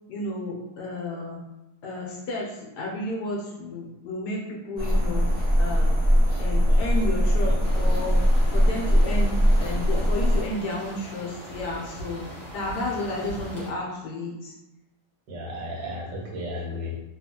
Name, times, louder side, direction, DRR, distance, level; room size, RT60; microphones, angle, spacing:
voice 1, 0.1-1.4 1.8-5.3 5.6-5.9 6.4-8.2 8.5-14.5, left 2 dB, 75° left, -3 dB, 1.1 m, -32 dB
sound 1, 4.8-10.4, equal, 25° right, 0.6 m, -21 dB
sound 2, 7.6-13.7, right 1 dB, 40° left, 0.7 m, -40 dB
voice 2, 15.3-17.0, left 1 dB, 85° right, -3 dB, 1.5 m, -34 dB
3.0 x 2.3 x 2.8 m, 0.98 s
omnidirectional pair, 1.8 m